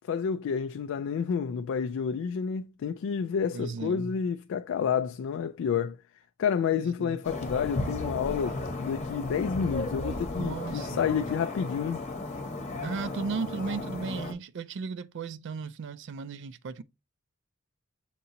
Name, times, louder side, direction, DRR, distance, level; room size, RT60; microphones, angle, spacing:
voice 1, 0.1-6.0 6.4-12.0, left 7 dB, 65° left, 0.3 m, -29 dB
voice 2, 3.5-4.1 6.7-7.2 10.4-11.1 12.8-16.8, right 4 dB, 60° right, 0.4 m, -36 dB
sound 1, 7.2-14.3, left 2 dB, 30° left, 0.9 m, -35 dB
6.6 x 2.8 x 2.6 m
head